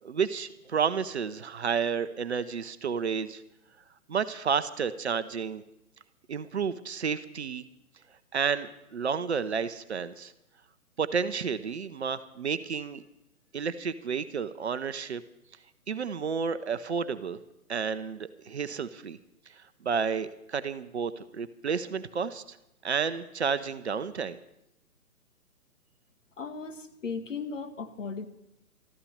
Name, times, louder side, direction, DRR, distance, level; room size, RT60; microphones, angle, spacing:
voice 1, 0.0-3.4 4.1-5.6 6.3-7.6 8.3-10.3 11.0-13.0 13.5-15.2 15.9-17.4 17.7-19.2 19.8-22.6 22.8-24.4, right 6 dB, 45° right, 12 dB, 0.8 m, -31 dB
voice 2, 26.4-28.3, left 5 dB, 55° left, 7 dB, 1.9 m, -36 dB
13.5 x 12.5 x 6.5 m, 0.87 s
figure-of-eight pair, 135°, 45 cm